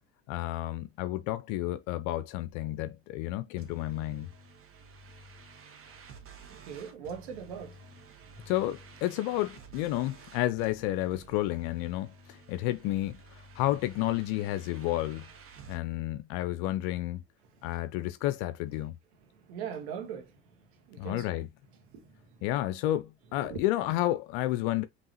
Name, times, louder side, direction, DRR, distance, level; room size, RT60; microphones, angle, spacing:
voice 1, 0.3-4.3 8.5-15.2 15.7-17.2 17.6-19.0 21.0-21.5 22.4-24.8, left 15 dB, 65° left, 0.5 m, -31 dB
sound 1, 3.6-15.8, right 4 dB, 45° right, 1.5 m, -52 dB
voice 2, 6.5-7.9 8.3-8.5 19.3-20.3 20.9-21.4 21.9-22.4 23.5-23.6, right 7 dB, 80° right, 1.5 m, -41 dB
5.3 x 3.0 x 2.9 m
hypercardioid pair, 70°, 32 cm